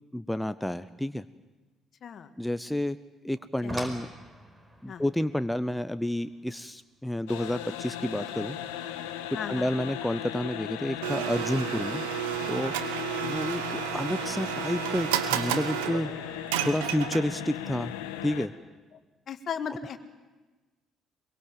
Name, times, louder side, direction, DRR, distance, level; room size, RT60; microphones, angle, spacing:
voice 1, 0.1-1.3 2.4-3.0 3.2-4.1 4.8-8.6 9.5-12.0 12.5-12.7 13.2-16.4 16.6-17.9 18.2-18.5, left 1 dB, 5° left, 13 dB, 0.7 m, -30 dB
voice 2, 2.0-2.3 3.6-3.7 4.9-5.0 9.3-9.7 19.3-20.0, left 7 dB, 50° left, 9 dB, 1.7 m, -36 dB
sound 1, 3.4-8.4 9.8-9.9 10.5-10.7 11.1-11.2, right 1 dB, 20° right, 5.1 m, -45 dB
sound 2, 7.3-18.5, left 12 dB, 75° left, 1.2 m, -37 dB
Domestic sounds home sounds, 11.0-17.5, right 12 dB, 75° right, 1.1 m, -32 dB
23.0 x 23.0 x 7.7 m, 1.2 s
hypercardioid pair, 50°, 0 cm